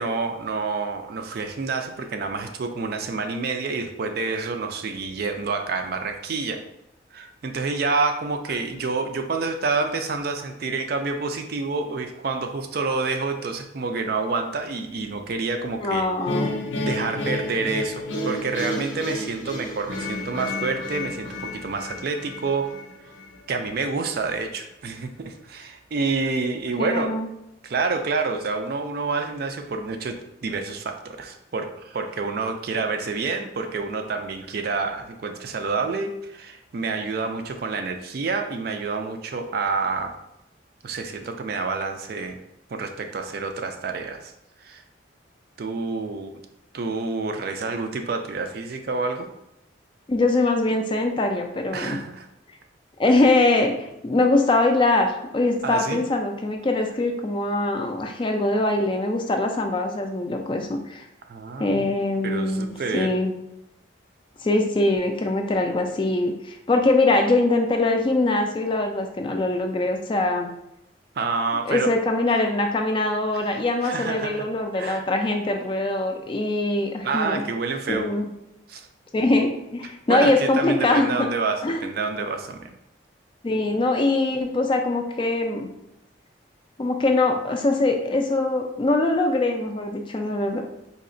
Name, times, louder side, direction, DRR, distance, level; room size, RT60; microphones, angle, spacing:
voice 1, 0.0-6.6 7.1-16.1 16.8-22.7 23.5-27.2 27.6-40.2 40.8-42.4 42.7-44.3 44.6-44.8 45.6-46.4 46.7-49.3 51.7-52.3 55.6-56.0 61.3-62.0 62.2-63.1 71.2-71.9 73.8-74.4 74.7-75.1 77.0-78.1 78.7-78.9 80.1-82.7, right 4 dB, 50° right, 6 dB, 0.4 m, -28 dB
voice 2, 15.8-16.5 26.8-27.3 50.1-52.0 53.0-53.7 54.0-61.0 61.6-62.7 62.9-63.3 64.4-70.5 71.7-77.4 77.9-78.3 79.1-81.3 81.6-81.8 83.4-85.7 86.8-90.6, left 2 dB, 25° left, 4 dB, 0.3 m, -22 dB
sound 1, 16.3-23.4, left 1 dB, 85° left, 0.6 m, -31 dB
4.1 x 2.8 x 2.5 m, 0.84 s
head